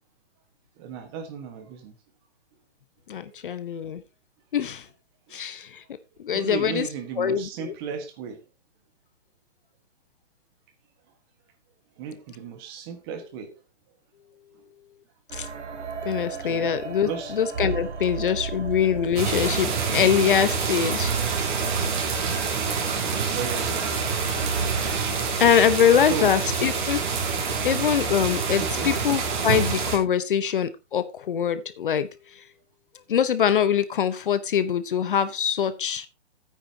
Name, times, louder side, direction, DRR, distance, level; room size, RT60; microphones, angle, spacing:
voice 1, 0.8-1.9 3.2-3.4 6.3-8.4 12.0-13.5 16.4-16.7 17.0-17.3 22.7-24.0 26.1-26.4 28.6-28.9, right 6 dB, 20° right, 1.4 m, -35 dB
voice 2, 3.1-4.0 4.5-4.8 5.3-5.8 6.2-6.9 7.2-7.7 15.3-15.5 16.0-21.1 24.9-25.1 25.4-27.0 27.6-32.1 33.1-36.1, left 8 dB, 45° left, 0.9 m, -23 dB
sound 1, 15.3-25.1, right 5 dB, 80° right, 2.5 m, -35 dB
sound 2, 19.2-30.0, right 5 dB, 45° right, 3.9 m, -27 dB
13.0 x 9.3 x 2.8 m
hypercardioid pair, 165°, 35 cm